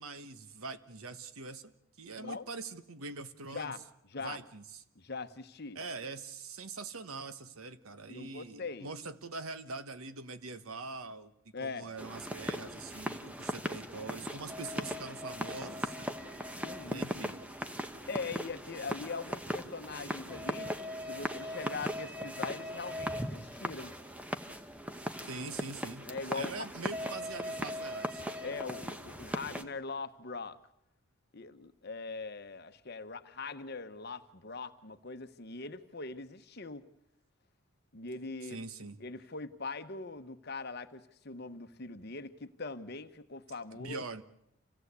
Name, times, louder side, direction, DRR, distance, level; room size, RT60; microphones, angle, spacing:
voice 1, 0.0-1.7 2.0-3.7 4.2-4.8 5.7-11.3 11.6-16.0 16.8-17.5 25.2-26.1 26.3-28.2 38.4-39.0 43.7-44.2, right 3 dB, 80° right, 12 dB, 1.2 m, -43 dB
voice 2, 3.5-3.8 4.1-4.4 4.9-5.8 8.1-8.9 11.5-11.9 16.6-17.1 18.1-20.7 21.1-23.9 26.1-26.5 28.4-30.6 31.3-36.8 37.9-38.6 39.0-44.1, left 4 dB, 50° left, 10 dB, 1.1 m, -41 dB
sound 1, 12.0-29.6, equal, 5° right, 0.9 m, -39 dB
27.5 x 17.0 x 8.2 m, 0.81 s
head